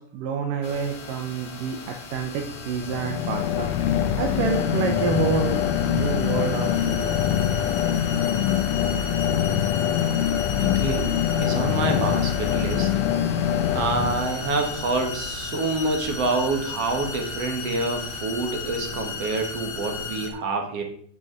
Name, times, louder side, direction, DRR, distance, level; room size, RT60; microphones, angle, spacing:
voice 1, 0.0-3.7 4.2-5.6 5.9-7.2, right 6 dB, 85° right, 3 dB, 2.6 m, -28 dB
sound 1, 0.6-20.3, left 4 dB, 45° left, 2.6 m, -35 dB
sound 2, 2.8-14.7, left 10 dB, 75° left, 2.3 m, -24 dB
voice 2, 10.6-12.9 13.8-20.8, right 3 dB, 55° right, 4 dB, 2.0 m, -27 dB
7.5 x 6.4 x 7.6 m, 0.64 s
omnidirectional pair, 3.8 m